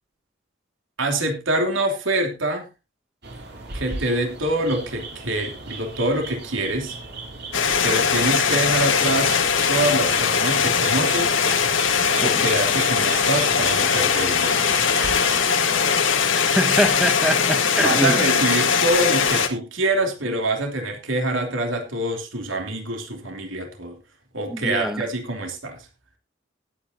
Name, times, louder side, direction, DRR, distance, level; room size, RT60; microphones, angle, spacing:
voice 1, 1.0-2.6 3.7-7.0 7.8-9.4 9.7-11.4 12.2-14.6 17.8-24.0 24.3-25.8, right 1 dB, 80° right, 3.1 m, -25 dB
sound 1, 3.2-15.4, right 3 dB, 60° right, 2.9 m, -36 dB
sound 2, 7.5-19.5, left 6 dB, 75° left, 1.7 m, -20 dB
voice 2, 16.3-18.3 24.5-25.1, equal, 5° right, 1.3 m, -24 dB
19.5 x 8.7 x 2.7 m
head